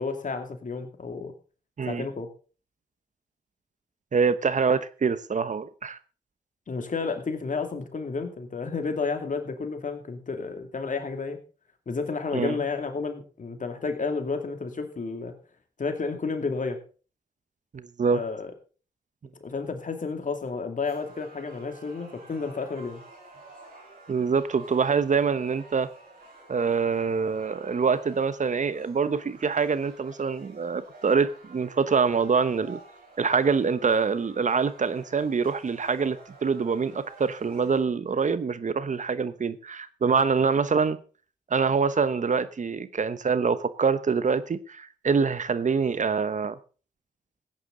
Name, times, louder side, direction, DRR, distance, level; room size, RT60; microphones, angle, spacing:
voice 1, 0.0-1.3 1.9-2.3 6.7-11.4 11.9-15.3 15.8-16.8 18.1-18.5 19.4-23.0, left 4 dB, 55° left, 2.5 m, -31 dB
voice 2, 4.1-6.0 12.3-12.6 17.7-18.2 24.1-25.9 26.5-32.8 33.2-41.0 41.5-46.6, right 5 dB, 50° right, 1.0 m, -25 dB
sound 1, 20.9-37.8, right 2 dB, 75° right, 7.1 m, -50 dB
16.0 x 9.5 x 3.9 m
supercardioid pair, 40°, 16 cm